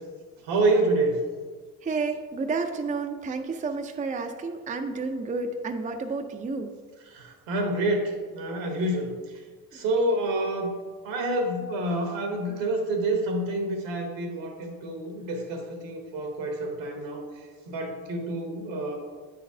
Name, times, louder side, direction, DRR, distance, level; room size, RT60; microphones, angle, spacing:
voice 1, 0.4-1.2 7.1-9.1 9.7-10.7 11.0-17.2 17.7-19.0, right 2 dB, 75° right, 3 dB, 1.3 m, -27 dB
voice 2, 1.8-6.7, right 4 dB, 20° right, 5 dB, 0.5 m, -30 dB
9.2 x 4.0 x 2.7 m, 1.5 s
supercardioid pair, 65°, 44 cm